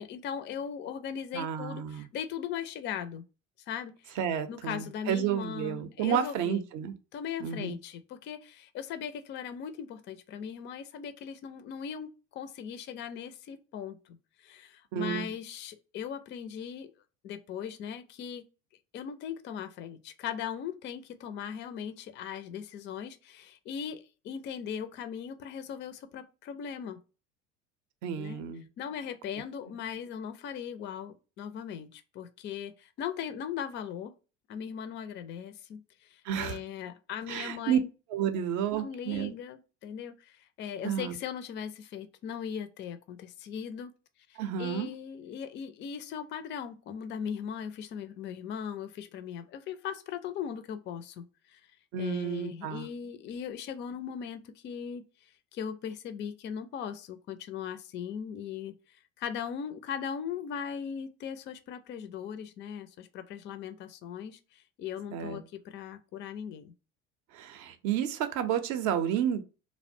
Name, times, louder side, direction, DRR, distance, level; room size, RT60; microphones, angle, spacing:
voice 1, 0.0-3.2 3.7-4.2 4.5-6.7 7.1-16.9 17.2-18.5 18.9-27.0 28.1-28.4 28.8-34.1 34.5-37.9 38.7-43.9 44.3-51.6 52.0-55.0 55.5-58.7 59.2-66.7, left 8 dB, 30° left, 0.4 m, -39 dB
voice 2, 1.3-2.1 4.2-6.9 7.4-7.7 14.9-15.3 28.0-28.7 36.3-36.6 37.3-37.8 38.1-39.3 40.8-41.2 44.4-44.9 51.9-52.9 65.1-65.4 67.3-69.4, right 9 dB, 50° right, 0.5 m, -31 dB
2.5 x 2.1 x 2.6 m
hypercardioid pair, 70°, 37 cm